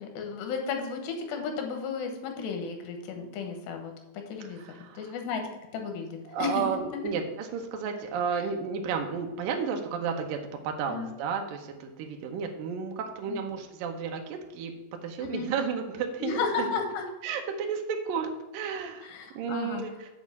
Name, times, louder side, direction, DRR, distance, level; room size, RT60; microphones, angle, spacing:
voice 1, 0.0-3.9 4.3-5.4 5.7-6.6 6.9-7.0 10.9-11.1 13.3-13.4 15.2-15.5 16.2-17.0 19.0-19.9, left 5 dB, 80° left, 4 dB, 3.2 m, -33 dB
voice 2, 4.6-5.1 6.3-14.7 15.0-16.7 17.2-19.1 19.4-20.1, right 6 dB, 75° right, 3 dB, 2.2 m, -32 dB
7.8 x 5.2 x 7.2 m, 1.1 s
omnidirectional pair, 5.0 m